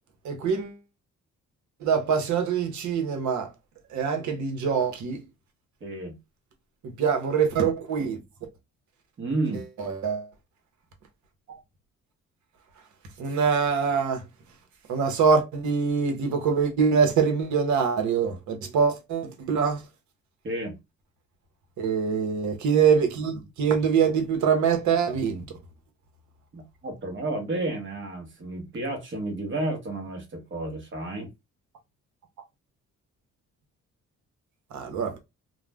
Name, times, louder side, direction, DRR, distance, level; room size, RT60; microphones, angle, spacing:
voice 1, 0.2-0.8 1.8-3.5 3.9-5.2 7.0-8.2 9.8-10.3 11.5-11.6 13.2-14.2 14.9-19.8 21.8-25.4 34.7-35.2, right 6 dB, 75° right, 0.8 m, -24 dB
voice 2, 5.8-6.2 9.2-9.6 20.4-20.8 26.5-31.3, right 2 dB, 40° right, 1.0 m, -31 dB
2.4 x 2.0 x 3.3 m
cardioid pair, 90°, 30 cm